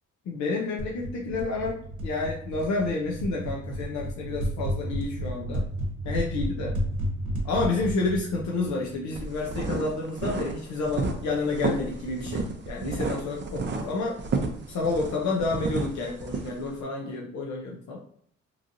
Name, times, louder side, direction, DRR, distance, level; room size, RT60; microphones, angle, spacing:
voice 1, 0.3-1.8 2.0-5.6 6.0-6.7 7.4-14.2 14.7-18.0, left 3 dB, 65° left, -1 dB, 0.6 m, -29 dB
sound 1, 0.8-9.4, right 1 dB, 75° right, 0.9 m, -32 dB
sound 2, 9.1-16.7, right 4 dB, 40° right, 0.5 m, -31 dB
3.0 x 2.5 x 2.6 m, 0.63 s
cardioid pair, 90°, 30 cm